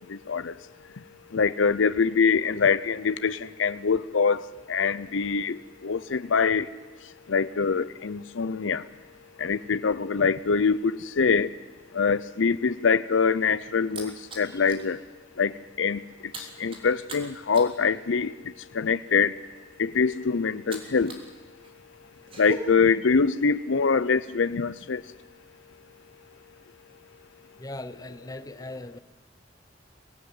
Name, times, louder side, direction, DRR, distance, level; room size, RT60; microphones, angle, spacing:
voice 1, 1.3-4.4 4.7-5.6 5.8-6.7 7.3-8.8 9.4-11.5 11.9-15.0 15.4-15.5 15.8-16.0 16.6-18.3 18.7-19.3 19.8-21.1 22.4-25.0, left 5 dB, 85° left, 14 dB, 0.6 m, -24 dB
sound 1, 13.4-14.9 15.3-15.5 15.7-21.3 21.6-22.6, right 2 dB, 30° right, 3.4 m, -42 dB
voice 2, 27.6-29.0, left 2 dB, 20° left, 12 dB, 0.8 m, -39 dB
24.5 x 17.0 x 9.6 m, 1.3 s
head